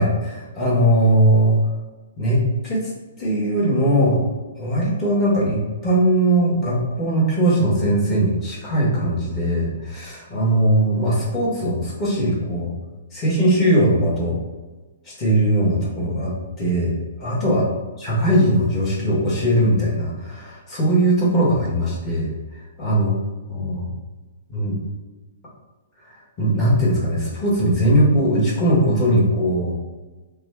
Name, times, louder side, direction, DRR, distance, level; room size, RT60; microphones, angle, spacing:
voice 1, 0.0-1.7 2.2-2.9 3.2-4.2 4.6-12.7 13.1-14.4 15.0-16.3 16.6-22.3 22.8-23.1 23.5-23.9 24.5-24.7 26.4-29.8, right 1 dB, 25° left, -5 dB, 1.2 m, -20 dB
2.9 x 2.3 x 3.3 m, 1.2 s
hypercardioid pair, 145°, 0 cm